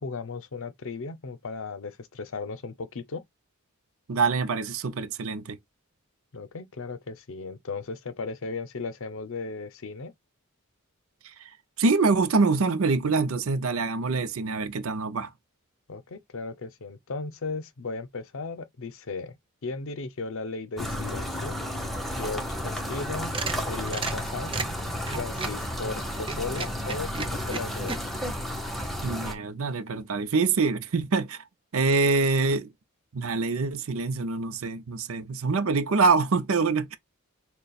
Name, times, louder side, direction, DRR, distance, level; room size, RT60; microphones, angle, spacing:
voice 1, 0.0-3.2 6.3-10.1 15.9-19.4 19.6-21.6 22.1-24.5 25.1-28.0, left 4 dB, 65° left, 0.7 m, -36 dB
voice 2, 4.1-5.6 11.2-11.5 11.8-15.3 29.0-31.4 31.7-32.7 33.1-37.0, right 4 dB, 65° right, 0.6 m, -25 dB
sound 1, 20.8-29.3, equal, ahead, 1.0 m, -32 dB
sound 2, 23.2-25.6 26.2-28.0, right 4 dB, 25° right, 0.6 m, -34 dB
6.6 x 2.2 x 2.3 m
head